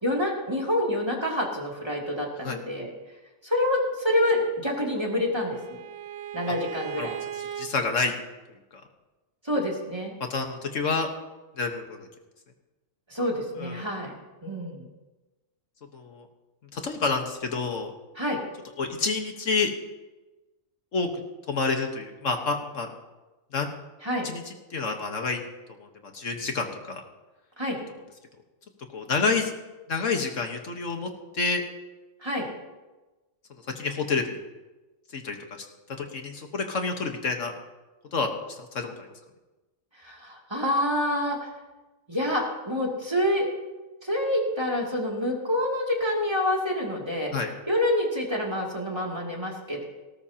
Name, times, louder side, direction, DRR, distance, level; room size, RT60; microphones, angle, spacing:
voice 1, 0.0-2.9 3.4-5.8 6.3-7.1 9.4-10.1 13.1-14.1 14.4-14.9 18.2-18.4 24.0-24.3 27.6-27.8 32.2-32.5 40.0-41.5 42.1-43.5 44.0-47.3 47.7-49.8, left 1 dB, 20° right, -2 dB, 2.7 m, -27 dB
Bowed string instrument, 4.6-7.7, right 11 dB, 75° right, 1.3 m, -38 dB
voice 2, 7.6-8.1 10.3-11.1 11.6-12.1 13.6-13.9 15.9-16.2 16.7-17.9 18.8-19.7 20.9-21.1 21.5-22.9 23.5-23.7 24.2-25.4 25.8-25.9 26.1-27.0 28.9-29.5 29.9-31.6 33.7-34.4 35.1-35.4 36.0-37.5 38.1-39.1 47.3-47.5, left 4 dB, 70° left, 4 dB, 1.7 m, -28 dB
18.5 x 18.0 x 2.9 m, 1.1 s
omnidirectional pair, 1.4 m